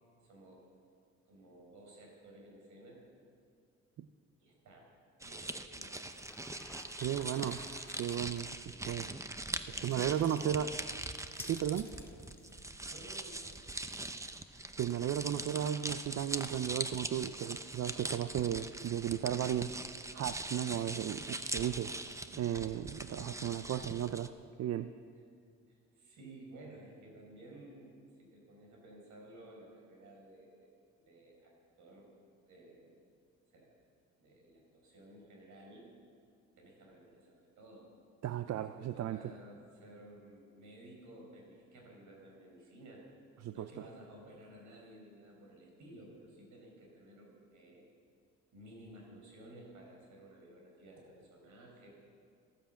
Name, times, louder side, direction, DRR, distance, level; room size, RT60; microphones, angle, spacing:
voice 1, 0.2-0.7 1.2-3.0 4.4-4.9 5.2-6.5 8.5-9.1 9.5-10.9 11.9-12.1 12.9-13.6 22.7-23.5 25.7-30.7 31.0-32.1 32.4-33.0 33.5-33.8 34.2-35.9 36.6-37.9 38.5-43.1 43.5-47.9 48.5-51.9, right 1 dB, 75° right, 0 dB, 5.1 m, -55 dB
sound 1, 5.2-24.3, right 2 dB, 10° right, 0.7 m, -42 dB
sound 2, 6.1-8.2 9.8-10.5 11.2-12.7, left 1 dB, 10° left, 2.0 m, -53 dB
voice 2, 7.0-7.6 8.0-8.5 8.8-9.1 9.8-10.7 11.4-11.9 14.8-19.7 20.1-21.9 22.3-24.3 24.6-24.9 38.2-39.2 43.4-43.7, right 10 dB, 60° right, 11 dB, 0.6 m, -35 dB
14.0 x 12.5 x 7.6 m, 2.3 s
cardioid pair, 90°, 30 cm